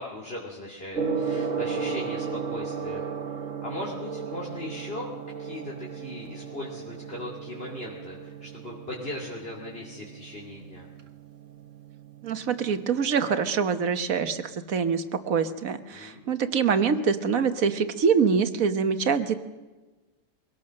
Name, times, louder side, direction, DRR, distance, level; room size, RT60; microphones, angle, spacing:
voice 1, 0.0-5.1 5.4-10.9 15.9-16.3, left 1 dB, 45° left, -4 dB, 3.0 m, -38 dB
Gong, 0.9-12.9, right 5 dB, 65° right, 1.6 m, -35 dB
voice 2, 12.2-19.4, right 6 dB, 85° right, 9 dB, 1.5 m, -25 dB
23.0 x 17.5 x 6.5 m, 1.2 s
omnidirectional pair, 1.4 m